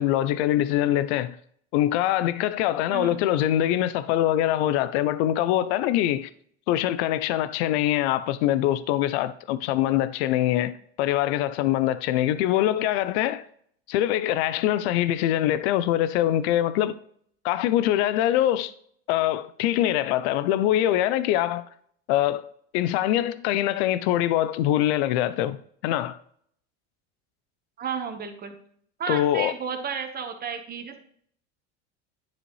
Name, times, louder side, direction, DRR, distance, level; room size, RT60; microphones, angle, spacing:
voice 1, 0.0-1.4 1.7-6.3 6.7-13.4 13.9-16.9 17.4-18.7 19.1-21.6 22.1-22.4 22.7-25.6 25.8-26.2 29.1-29.5, left 12 dB, 75° left, 0.6 m, -23 dB
voice 2, 2.9-3.2 27.8-28.5 29.0-31.0, right 6 dB, 25° right, 1.3 m, -32 dB
10.5 x 5.0 x 3.2 m
supercardioid pair, 120°, 34 cm